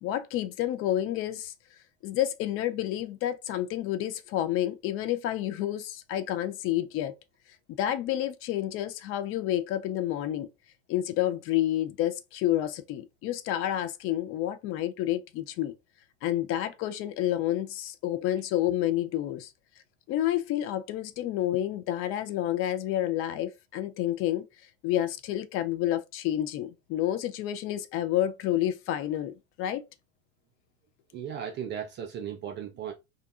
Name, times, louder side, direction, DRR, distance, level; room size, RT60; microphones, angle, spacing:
voice 1, 0.0-1.5 2.0-7.1 7.8-10.5 10.9-15.7 16.2-19.5 20.1-24.5 24.8-29.8, left 13 dB, 35° left, 0.4 m, -29 dB
voice 2, 31.1-32.9, right 8 dB, 30° right, 0.4 m, -36 dB
2.6 x 2.2 x 2.4 m
hypercardioid pair, 90°, 39 cm